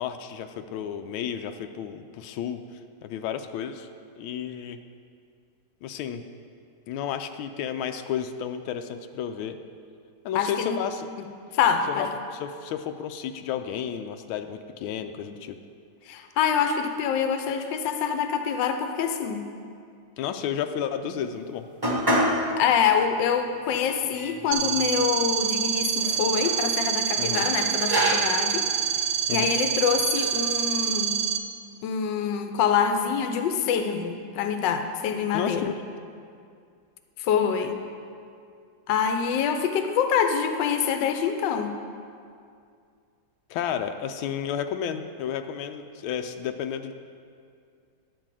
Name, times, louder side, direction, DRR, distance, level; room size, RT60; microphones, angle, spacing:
voice 1, 0.0-2.6 3.0-3.9 4.2-4.8 5.8-6.2 6.9-9.6 10.2-11.1 11.9-15.6 20.2-21.7 27.2-27.5 29.3-29.5 35.3-35.7 43.5-46.9, left 8 dB, 90° left, 7 dB, 1.4 m, -32 dB
voice 2, 10.3-10.8 11.5-12.1 16.1-19.5 22.6-28.7 29.3-31.2 31.8-35.7 37.2-37.8 38.9-41.7, left 7 dB, 70° left, 7 dB, 1.3 m, -25 dB
sound 1, 21.8-22.4 22.8-22.9 23.7-23.8 24.1-25.1 26.0-26.6 27.3-28.5 29.2-29.5 30.2-30.6, right 1 dB, 20° right, 0.7 m, -27 dB
sound 2, 24.5-31.4, right 9 dB, 60° right, 1.2 m, -26 dB
11.0 x 4.9 x 7.5 m, 2.3 s
omnidirectional pair, 2.2 m